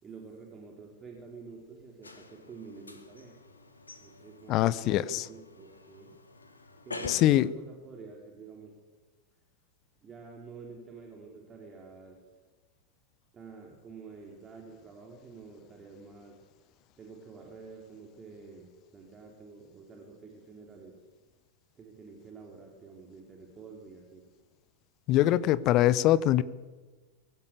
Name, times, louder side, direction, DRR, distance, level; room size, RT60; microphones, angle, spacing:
voice 1, 0.0-3.4 4.0-6.2 6.8-8.8 10.0-12.2 13.3-16.5 17.0-21.0 21.7-24.3, right 4 dB, 20° right, 0 dB, 3.9 m, -49 dB
sound 1, 2.0-7.4, left 2 dB, 80° left, 2.5 m, -46 dB
voice 2, 4.5-5.3 7.1-7.5 25.1-26.4, left 14 dB, 40° left, 19 dB, 0.9 m, -23 dB
24.0 x 16.0 x 8.3 m, 1.3 s
figure-of-eight pair, 90°, 0 cm